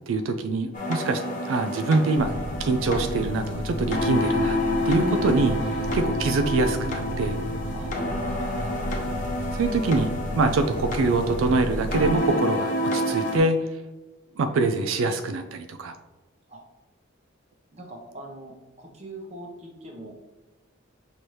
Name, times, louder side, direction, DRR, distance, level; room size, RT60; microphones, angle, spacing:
voice 1, 0.1-2.3 2.6-4.6 4.9-7.4 9.5-10.1 10.4-13.7 14.4-16.0, right 3 dB, 90° right, 7 dB, 0.4 m, -24 dB
sound 1, 0.7-13.4, left 1 dB, 40° left, 0.8 m, -29 dB
sound 2, 2.2-12.2, equal, 85° left, 0.5 m, -33 dB
voice 2, 8.3-9.0 16.5-16.6 17.7-20.1, right 1 dB, 35° right, 0 dB, 0.9 m, -42 dB
6.1 x 2.8 x 3.2 m, 1.2 s
head